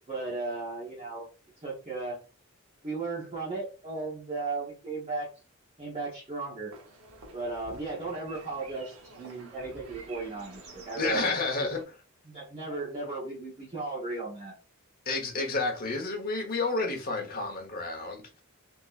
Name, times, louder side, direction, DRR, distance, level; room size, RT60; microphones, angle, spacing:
voice 1, 0.1-1.2 1.6-2.2 2.8-5.3 5.8-6.7 7.3-11.7 12.2-14.5, right 3 dB, 30° right, 1.1 m, -36 dB
sound 1, 6.7-11.8, right 2 dB, 85° right, 0.9 m, -49 dB
voice 2, 11.0-11.8 15.1-18.4, left 3 dB, 45° left, 1.0 m, -30 dB
3.7 x 2.9 x 2.4 m
head